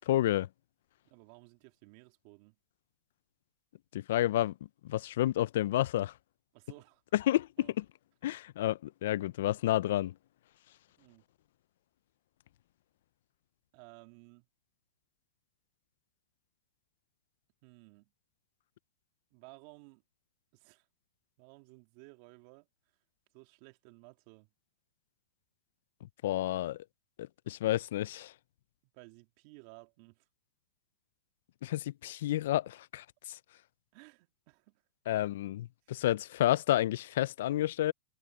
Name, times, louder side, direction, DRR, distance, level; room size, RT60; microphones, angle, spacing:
voice 1, 0.1-0.5 3.9-4.5 4.9-6.1 7.1-7.8 8.2-10.1 26.2-26.8 27.2-28.3 31.6-33.4 35.1-37.9, left 14 dB, 70° left, 0.4 m, -30 dB
voice 2, 1.1-2.6 6.5-7.0 7.6-7.7 11.0-11.2 13.7-14.5 17.6-18.1 19.3-20.0 20.5-20.9 21.4-22.7 23.3-24.5 28.9-30.3 33.9-34.8, right 26 dB, 50° right, 2.5 m, -56 dB
hypercardioid pair, 130°, 0 cm